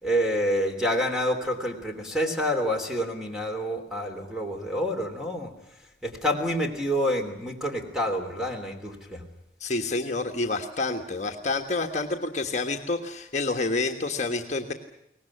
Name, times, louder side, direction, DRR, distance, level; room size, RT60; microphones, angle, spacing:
voice 1, 0.0-5.5 6.0-9.2, equal, 5° right, 3 dB, 3.2 m, -28 dB
voice 2, 9.6-14.7, left 3 dB, 40° left, 4 dB, 1.4 m, -28 dB
23.5 x 19.0 x 10.0 m, 0.82 s
head